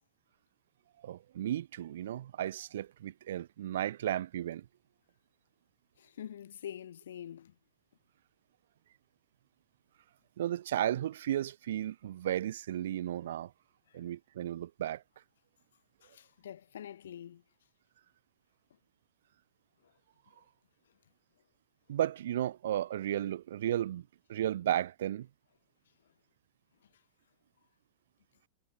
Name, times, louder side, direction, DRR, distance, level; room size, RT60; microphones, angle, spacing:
voice 1, 1.0-4.6 10.4-13.5 13.9-15.0 21.9-24.0 24.3-25.3, right 12 dB, 60° right, 0.5 m, -34 dB
voice 2, 6.0-7.5 13.9-14.0 16.0-17.4, left 10 dB, 65° left, 0.8 m, -45 dB
figure-of-eight pair, 90°, 0 cm